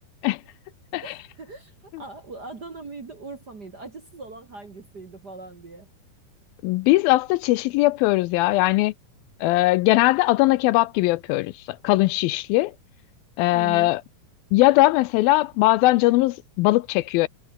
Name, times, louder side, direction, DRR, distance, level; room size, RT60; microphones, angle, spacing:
voice 1, 1.0-5.9 13.5-13.9, right 3 dB, 35° right, 1.8 m, -40 dB
voice 2, 6.6-8.9 9.4-12.7 13.4-14.0 14.5-17.3, left 19 dB, 80° left, 2.3 m, -20 dB
omnidirectional pair, 4.4 m